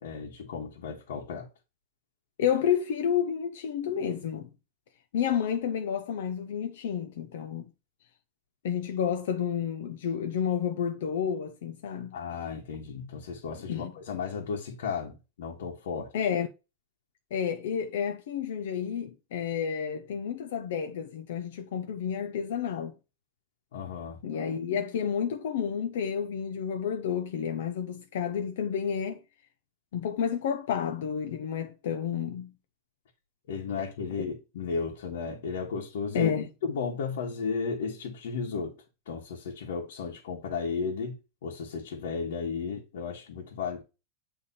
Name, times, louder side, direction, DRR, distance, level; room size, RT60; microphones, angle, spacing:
voice 1, 0.0-1.5 12.1-16.1 23.7-24.2 33.5-36.3 36.6-38.8 39.1-43.8, left 5 dB, 85° left, 1.6 m, -34 dB
voice 2, 2.4-4.5 5.1-7.6 8.6-12.2 13.7-13.9 16.1-16.5 17.3-22.9 24.2-29.2 29.9-32.5 36.1-36.5, left 8 dB, 65° left, 0.6 m, -30 dB
8.5 x 3.4 x 4.1 m
supercardioid pair, 180°, 0 cm